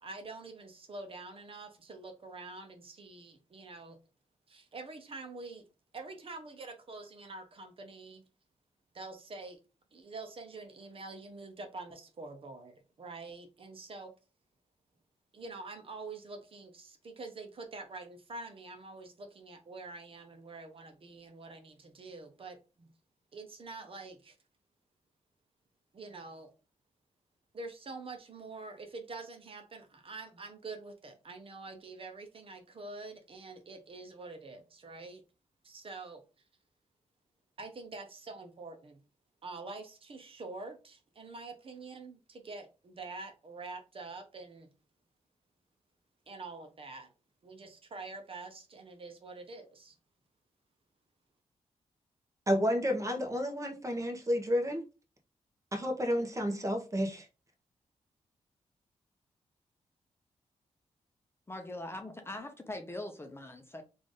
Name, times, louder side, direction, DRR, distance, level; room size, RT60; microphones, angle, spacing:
voice 1, 0.0-4.0 4.5-5.6 5.9-8.2 8.9-9.6 9.9-14.1 15.3-22.9 23.3-24.4 25.9-26.5 27.5-35.2 35.6-36.2 37.6-39.0 39.4-44.7 46.3-47.1 47.4-50.0, right 3 dB, 50° right, 0.8 m, -46 dB
voice 2, 52.5-54.8 55.7-57.2, equal, 25° right, 1.1 m, -31 dB
voice 3, 61.5-63.8, left 1 dB, 20° left, 0.7 m, -42 dB
3.3 x 2.6 x 3.8 m
cardioid pair, 85°, 12 cm